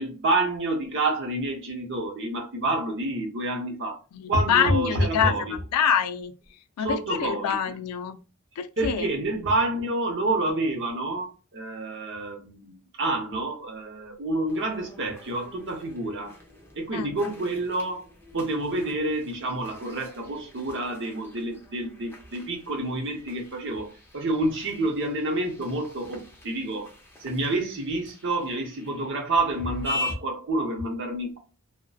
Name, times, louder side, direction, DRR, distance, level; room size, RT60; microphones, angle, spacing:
voice 1, 0.0-4.0 4.3-5.5 6.8-7.6 8.8-16.4 16.7-18.0 18.3-26.9 27.2-31.4, right 2 dB, 55° right, 0.7 m, -28 dB
voice 2, 4.1-6.3 6.8-8.2 8.6-9.1 16.9-17.1, left 7 dB, 85° left, 0.3 m, -26 dB
sound 1, 14.5-30.1, left 2 dB, 10° left, 0.5 m, -42 dB
2.6 x 2.1 x 2.3 m
head